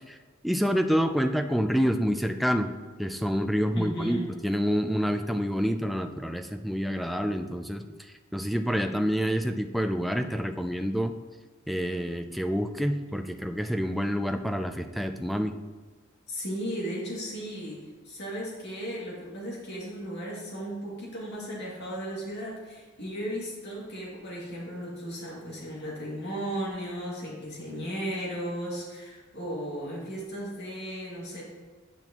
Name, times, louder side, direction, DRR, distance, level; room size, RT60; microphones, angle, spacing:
voice 1, 0.4-2.7 3.0-4.2 4.4-8.0 8.3-11.1 11.7-15.6, equal, ahead, 7 dB, 0.3 m, -27 dB
voice 2, 3.7-4.3 16.3-17.8 18.0-31.4, equal, 55° left, -5 dB, 2.2 m, -35 dB
8.9 x 6.1 x 2.9 m, 1.3 s
head